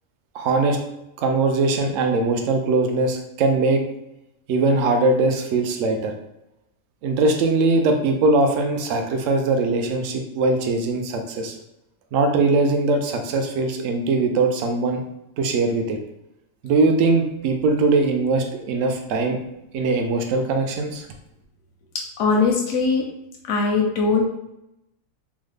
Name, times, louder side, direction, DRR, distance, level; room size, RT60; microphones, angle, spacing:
voice 1, 0.3-0.8 1.2-3.8 4.5-6.1 7.0-11.6 12.1-15.0 15.4-16.0 16.6-19.4 19.7-21.1, right 3 dB, 75° right, 4 dB, 0.9 m, -21 dB
voice 2, 22.2-23.0 23.5-24.3, left 4 dB, 85° left, 0 dB, 1.0 m, -20 dB
3.6 x 2.0 x 3.2 m, 0.85 s
omnidirectional pair, 1.4 m